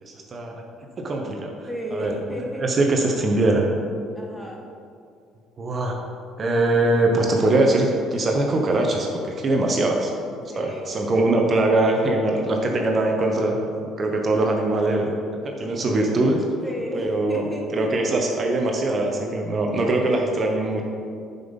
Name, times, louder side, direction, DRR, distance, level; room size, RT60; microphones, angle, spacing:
voice 1, 0.3-0.6 1.0-1.5 1.9-2.1 2.6-3.7 5.6-6.0 6.4-10.1 10.6-13.6 13.8-15.1 15.4-16.4 16.9-17.4 17.7-20.8, right 2 dB, 40° right, 1 dB, 1.0 m, -22 dB
voice 2, 1.7-2.7 4.1-4.7 10.5-11.1 16.6-18.2, equal, 10° left, -1 dB, 1.8 m, -33 dB
7.5 x 5.6 x 5.4 m, 2.4 s
supercardioid pair, 75°, 0 cm